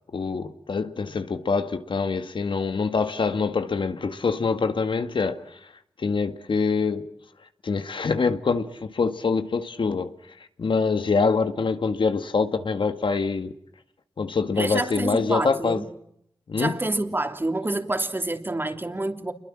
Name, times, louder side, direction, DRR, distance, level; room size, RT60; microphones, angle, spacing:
voice 1, 0.1-5.6 6.0-7.1 7.6-10.1 10.6-13.5 14.2-15.8 16.5-16.7, left 4 dB, 70° left, 1.9 m, -25 dB
voice 2, 14.6-15.9 16.6-19.3, right 2 dB, 25° right, 3.1 m, -27 dB
29.0 x 22.5 x 7.6 m
wide cardioid pair, 80°, 9 cm